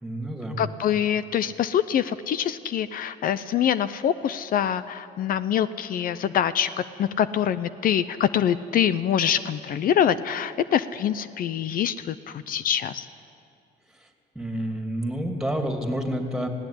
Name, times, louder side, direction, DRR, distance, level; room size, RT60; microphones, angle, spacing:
voice 1, 0.0-0.6 14.3-16.5, equal, 5° right, 4 dB, 2.9 m, -29 dB
voice 2, 0.6-13.0, left 9 dB, 55° left, 14 dB, 0.7 m, -25 dB
19.5 x 16.5 x 10.0 m, 2.4 s
cardioid pair, 110°, 17 cm